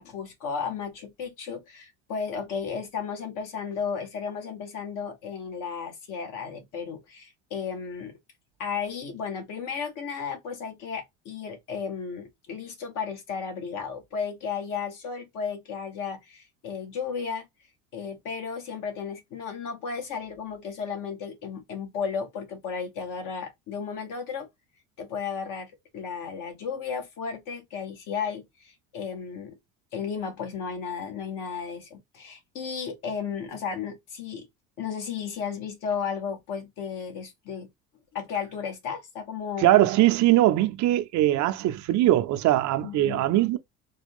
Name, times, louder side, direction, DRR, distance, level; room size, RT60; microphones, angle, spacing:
voice 1, 0.0-8.2 8.6-17.5 17.9-24.5 25.0-29.6 29.9-34.5 34.8-37.7 38.1-39.7 42.8-43.2, left 6 dB, 55° left, 1.6 m, -34 dB
voice 2, 39.6-43.6, right 14 dB, 50° right, 0.6 m, -21 dB
4.0 x 2.3 x 3.4 m
supercardioid pair, 100°, 37 cm